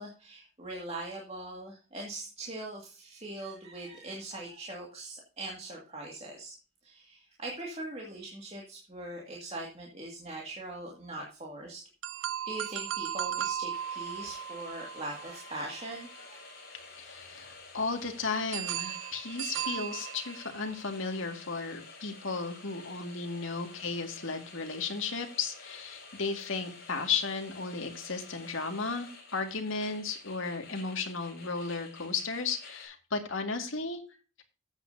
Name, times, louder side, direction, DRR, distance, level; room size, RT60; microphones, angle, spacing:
voice 1, 0.0-6.5 6.8-11.8 12.5-16.4, right 2 dB, 30° right, -2 dB, 2.1 m, -41 dB
sound 1, 12.0-16.1 18.5-20.9, right 10 dB, 65° right, 0.3 m, -37 dB
sound 2, 13.7-32.8, left 3 dB, 50° left, 5.3 m, -50 dB
voice 2, 17.0-34.0, left 4 dB, 75° left, 4 dB, 2.0 m, -34 dB
13.5 x 8.7 x 2.7 m, 0.35 s
head